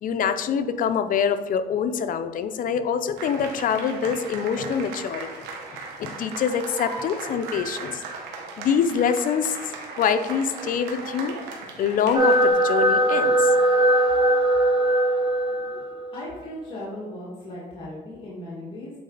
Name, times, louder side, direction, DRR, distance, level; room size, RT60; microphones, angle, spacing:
voice 1, 0.0-5.3 5.7-8.0 8.6-9.6 10.0-11.4 11.8-13.5, left 7 dB, 55° left, 10 dB, 0.6 m, -25 dB
sound 1, 3.2-12.5, right 4 dB, 90° right, 1.3 m, -37 dB
sound 2, 12.1-16.1, right 1 dB, 30° right, 2.3 m, -20 dB
voice 2, 16.1-18.9, left 1 dB, 30° left, -7 dB, 1.9 m, -37 dB
8.5 x 4.2 x 3.9 m, 1.3 s
cardioid pair, 110°, 17 cm